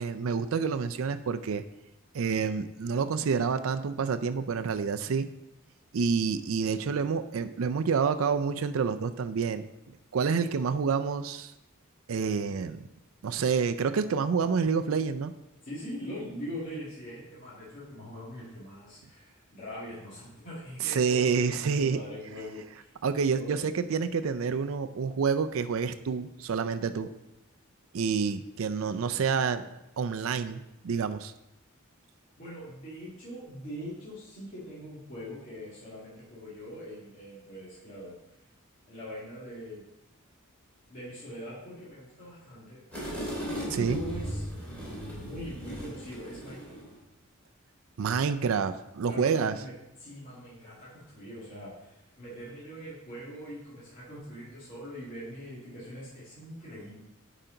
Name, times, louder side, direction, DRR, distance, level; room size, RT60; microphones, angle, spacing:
voice 1, 0.0-1.6 2.1-5.3 5.9-9.6 10.1-11.5 12.1-12.9 13.2-15.3 20.8-22.0 23.0-27.1 27.9-29.7 30.0-31.3 43.8-44.0 48.0-49.5, right 5 dB, 75° right, 10 dB, 0.4 m, -28 dB
voice 2, 15.6-22.9 23.3-23.7 29.1-29.7 32.4-38.2 38.9-39.8 40.9-42.8 43.5-46.8 49.1-49.7 50.0-57.0, equal, 40° left, -10 dB, 2.3 m, -42 dB
sound 1, 42.9-47.0, equal, 5° left, 3.0 m, -37 dB
10.0 x 5.0 x 3.9 m, 0.91 s
head